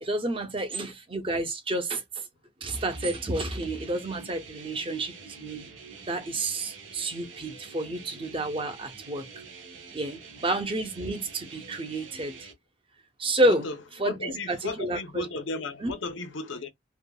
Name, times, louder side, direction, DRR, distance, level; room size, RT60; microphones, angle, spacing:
voice 1, 0.0-2.2 2.6-5.7 6.1-9.3 9.9-12.5 13.2-13.7 14.0-15.2 15.8-15.9, right 1 dB, 30° right, 0.6 m, -30 dB
sound 1, 2.8-12.5, right 4 dB, 80° right, 0.9 m, -47 dB
voice 2, 13.5-13.8 14.0-16.7, left 3 dB, 80° left, 0.8 m, -34 dB
3.4 x 2.1 x 2.3 m
head